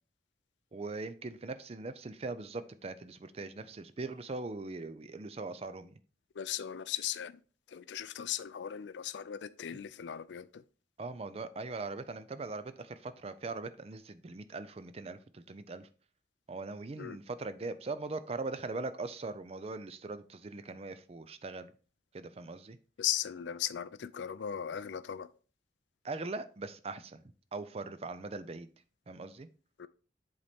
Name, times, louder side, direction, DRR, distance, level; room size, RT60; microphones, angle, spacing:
voice 1, 0.7-6.0 11.0-15.9 16.5-21.7 22.1-22.8 26.0-27.2 27.5-28.7 29.1-29.5, right 3 dB, 35° right, 0.5 m, -40 dB
voice 2, 6.3-7.4 7.7-10.6 17.0-17.2 23.0-25.3 29.8-29.9, left 10 dB, 90° left, 0.4 m, -37 dB
7.8 x 4.2 x 3.5 m
head